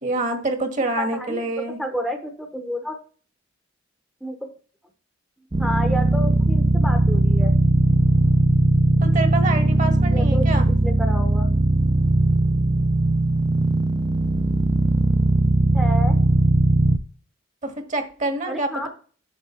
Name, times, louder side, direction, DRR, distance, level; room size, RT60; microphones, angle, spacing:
voice 1, 0.0-1.8 9.0-10.7 17.6-18.9, right 2 dB, 40° right, 6 dB, 1.5 m, -26 dB
voice 2, 1.0-1.4 1.8-3.0 4.2-4.4 5.6-7.5 10.1-10.5 10.8-11.5 15.7-16.2 18.5-18.9, equal, ahead, 5 dB, 0.9 m, -30 dB
sound 1, 5.5-17.0, right 2 dB, 20° right, 0.5 m, -19 dB
7.6 x 6.5 x 4.3 m, 0.40 s
head